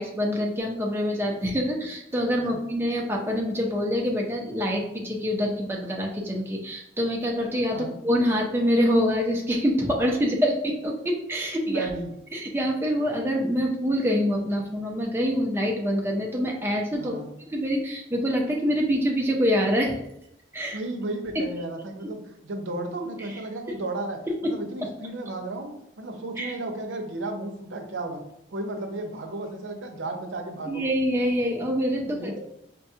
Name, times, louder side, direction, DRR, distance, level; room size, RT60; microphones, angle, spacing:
voice 1, 0.0-11.9 12.3-17.2 17.5-20.0 20.5-20.8 21.3-21.4 23.2-23.3 23.7-23.8 24.3-24.4 26.4-26.5 30.7-32.4, equal, 15° right, -1 dB, 0.5 m, -25 dB
voice 2, 11.7-12.1 17.0-17.3 20.7-28.2 28.5-30.8 32.0-32.4, right 2 dB, 85° right, 4 dB, 0.6 m, -34 dB
5.3 x 2.2 x 2.7 m, 0.79 s
head